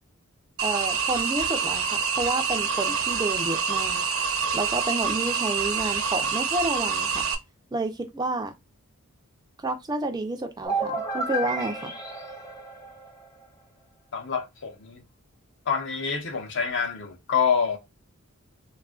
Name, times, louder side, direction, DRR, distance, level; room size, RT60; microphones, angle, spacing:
voice 1, 0.6-4.0 4.5-7.2 7.7-8.5 9.6-11.9, right 2 dB, 20° right, 0.3 m, -30 dB
sound 1, 0.6-7.3, right 6 dB, 70° right, 0.6 m, -26 dB
sound 2, 10.6-13.4, right 2 dB, 15° left, 0.6 m, -31 dB
voice 2, 14.1-15.0 15.7-17.8, left 6 dB, 55° left, 0.7 m, -26 dB
3.4 x 2.4 x 2.3 m
head